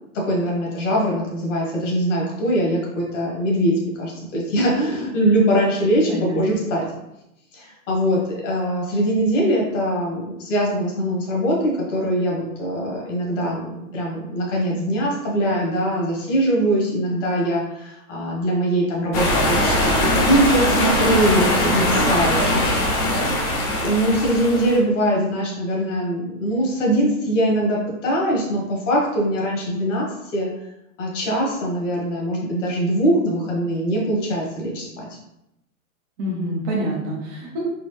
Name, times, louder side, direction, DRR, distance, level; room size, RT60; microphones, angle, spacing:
voice 1, 0.1-6.8 7.5-22.7 23.8-30.5 31.0-35.1, right 1 dB, 55° left, -2 dB, 1.5 m, -22 dB
voice 2, 6.1-6.6 36.2-37.6, equal, 15° right, -4 dB, 0.4 m, -26 dB
sound 1, 19.1-24.8, left 1 dB, 25° left, 0.6 m, -20 dB
4.3 x 2.3 x 3.2 m, 0.86 s
hypercardioid pair, 140°, 44 cm